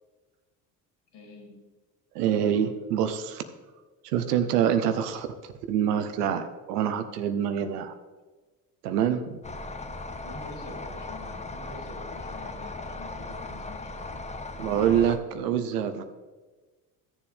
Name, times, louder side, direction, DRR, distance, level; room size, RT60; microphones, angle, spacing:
voice 1, 1.1-1.6 10.2-14.2, left 2 dB, 60° left, -1 dB, 3.4 m, -45 dB
voice 2, 2.1-3.4 4.0-5.3 5.7-7.9 8.8-9.4 14.6-16.0, right 9 dB, 80° right, 10 dB, 0.9 m, -26 dB
sound 1, 9.4-15.2, left 2 dB, 15° left, 0.8 m, -38 dB
14.0 x 7.1 x 3.4 m, 1.3 s
hypercardioid pair, 60°, 46 cm